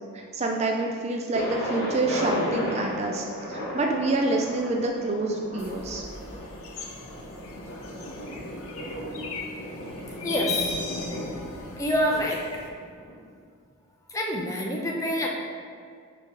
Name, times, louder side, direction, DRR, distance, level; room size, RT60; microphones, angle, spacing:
voice 1, 0.1-6.0, right 2 dB, 30° right, 1 dB, 0.3 m, -27 dB
Thunder, 1.3-13.1, equal, 50° left, 1.3 m, -35 dB
sound 1, 5.6-12.7, left 4 dB, 75° left, 0.7 m, -38 dB
voice 2, 10.2-10.7 11.8-12.4 14.1-15.3, equal, 15° left, -1 dB, 0.6 m, -26 dB
4.6 x 4.6 x 5.1 m, 2.1 s
head